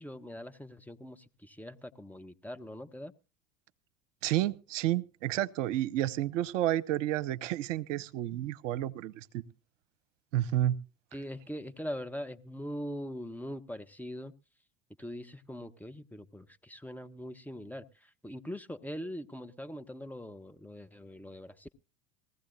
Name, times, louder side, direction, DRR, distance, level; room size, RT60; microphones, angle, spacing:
voice 1, 0.0-3.1 11.1-14.3 15.0-21.7, equal, 5° left, 0.8 m, -42 dB
voice 2, 4.2-9.4 10.3-10.8, right 13 dB, 70° right, 0.8 m, -30 dB
20.5 x 15.5 x 2.6 m
hypercardioid pair, 80°, 39 cm